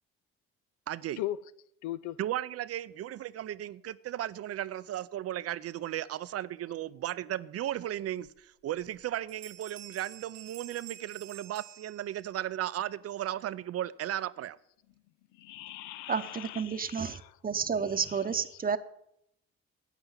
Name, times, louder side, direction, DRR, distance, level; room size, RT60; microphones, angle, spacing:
voice 1, 0.9-1.2 2.2-14.6, right 12 dB, 55° right, 0.5 m, -35 dB
voice 2, 1.8-2.2 15.4-17.3 17.8-18.3, left 14 dB, 85° left, 0.5 m, -39 dB
sound 1, 8.2-8.3 8.8-9.0 9.3-12.4, right 13 dB, 90° right, 1.6 m, -49 dB
voice 3, 16.1-18.8, right 6 dB, 30° right, 0.8 m, -31 dB
9.0 x 8.2 x 7.0 m
supercardioid pair, 75°, 29 cm